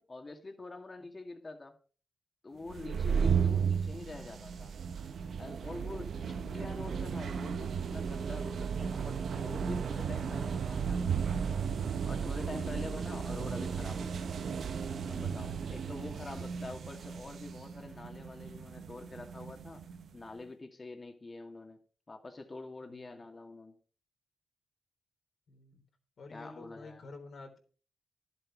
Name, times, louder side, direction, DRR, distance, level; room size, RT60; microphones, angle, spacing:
voice 1, 0.0-1.7 2.4-4.7 5.4-11.4 12.1-14.3 15.1-19.8 20.1-21.8 22.1-23.8 26.3-27.1, left 2 dB, 35° left, 2.3 m, -45 dB
sound 1, 2.7-20.1, right 6 dB, 70° right, 1.0 m, -34 dB
voice 2, 3.2-3.5 6.0-6.1 12.6-12.9 25.5-25.8 26.2-27.6, left 3 dB, 65° left, 3.7 m, -50 dB
11.5 x 8.0 x 4.9 m
supercardioid pair, 50°, 0 cm